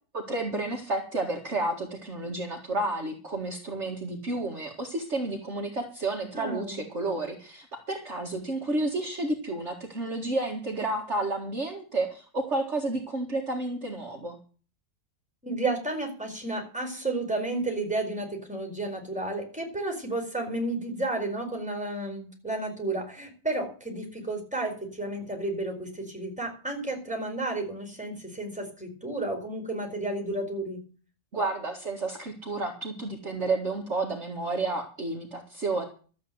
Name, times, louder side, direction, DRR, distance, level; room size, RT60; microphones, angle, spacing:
voice 1, 0.1-14.4 31.3-35.8, right 2 dB, 45° right, 1 dB, 2.2 m, -31 dB
voice 2, 6.3-6.8 15.4-30.8, right 2 dB, 5° right, 3 dB, 4.3 m, -32 dB
13.0 x 8.4 x 7.9 m, 0.40 s
omnidirectional pair, 1.7 m